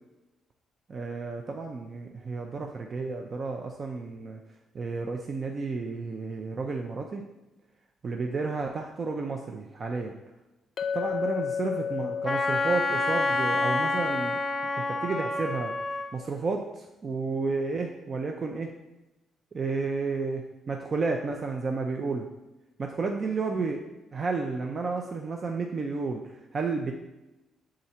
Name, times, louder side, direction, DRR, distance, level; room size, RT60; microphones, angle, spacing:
voice 1, 0.9-4.4 4.7-7.2 8.0-10.1 10.9-14.3 14.9-15.7 16.1-18.7 19.5-22.3 22.8-23.8 24.1-26.2 26.5-26.9, right 4 dB, 40° right, 3 dB, 0.5 m, -31 dB
Chink clink, 10.8-15.2, left 7 dB, 50° left, 0.5 m, -34 dB
Wind instrument woodwind instrument, 12.3-16.1, left 2 dB, 10° left, 0.7 m, -28 dB
6.9 x 3.8 x 4.3 m, 1.0 s
cardioid pair, 90°, 0 cm